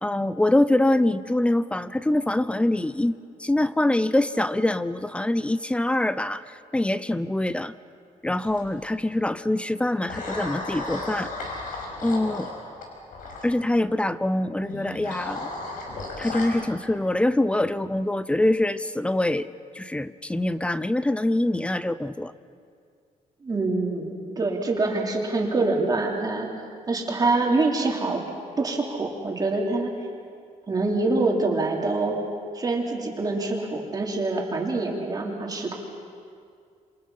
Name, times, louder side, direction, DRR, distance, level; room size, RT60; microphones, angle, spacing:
voice 1, 0.0-7.7 8.2-11.3 12.0-12.5 13.4-15.5 16.2-19.5 19.7-22.3, left 1 dB, 10° left, 15 dB, 0.6 m, -24 dB
sound 1, 8.4-8.9 10.1-13.5 14.7-16.5, left 2 dB, 85° left, 5.9 m, -34 dB
voice 2, 23.4-26.5 26.9-28.2 28.6-29.9 30.7-32.2 32.5-35.7, right 3 dB, 30° right, 0 dB, 3.2 m, -25 dB
27.5 x 26.5 x 5.7 m, 2.3 s
cardioid pair, 135°, 14 cm